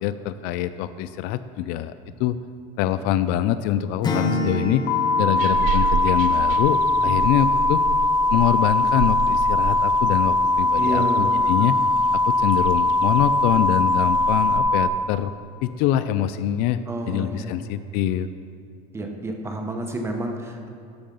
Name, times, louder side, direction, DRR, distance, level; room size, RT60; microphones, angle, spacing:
voice 1, 0.0-1.9 2.2-2.4 2.8-4.8 5.2-7.8 8.3-11.8 12.1-15.3 15.6-16.8 17.1-18.3, left 11 dB, 65° left, 13 dB, 0.4 m, -24 dB
Acoustic guitar / Strum, 4.0-7.1, left 2 dB, 25° left, 0.8 m, -29 dB
sound 1, 4.9-14.9, left 2 dB, 85° left, 0.8 m, -20 dB
sound 2, 5.3-14.6, right 5 dB, 55° right, 0.6 m, -32 dB
voice 2, 10.8-11.3 16.9-17.6 18.9-20.7, right 1 dB, 15° right, 3 dB, 0.9 m, -29 dB
13.0 x 4.8 x 5.3 m, 2.4 s
cardioid pair, 140°, 17 cm